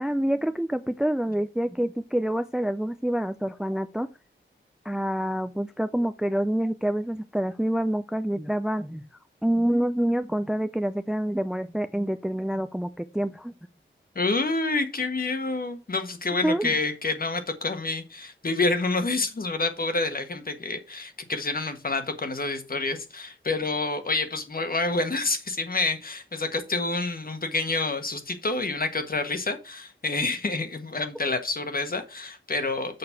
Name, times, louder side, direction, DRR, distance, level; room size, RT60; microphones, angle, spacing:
voice 1, 0.0-4.1 4.9-9.0 9.4-13.5 16.4-16.7, right 1 dB, 5° right, 0.4 m, -27 dB
voice 2, 14.1-33.0, left 3 dB, 45° left, 1.4 m, -28 dB
6.8 x 5.3 x 5.7 m
wide cardioid pair, 95°, 20 cm